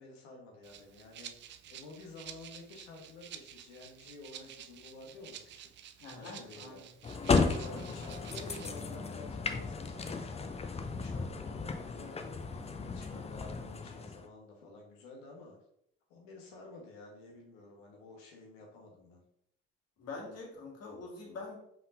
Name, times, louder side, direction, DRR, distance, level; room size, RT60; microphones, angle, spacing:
voice 1, 0.0-1.3 1.7-5.7 6.1-6.8 7.4-15.6 16.1-19.2, left 2 dB, 65° left, 0 dB, 1.3 m, -51 dB
Rattle (instrument), 0.6-8.7, right 10 dB, 35° right, 0.4 m, -50 dB
voice 2, 6.0-6.9 7.6-7.8 20.0-21.6, left 3 dB, 50° left, -2 dB, 1.8 m, -45 dB
sound 1, 7.0-14.3, left 4 dB, 20° left, 0.5 m, -34 dB
5.3 x 3.7 x 2.6 m, 0.72 s
figure-of-eight pair, 50°, 32 cm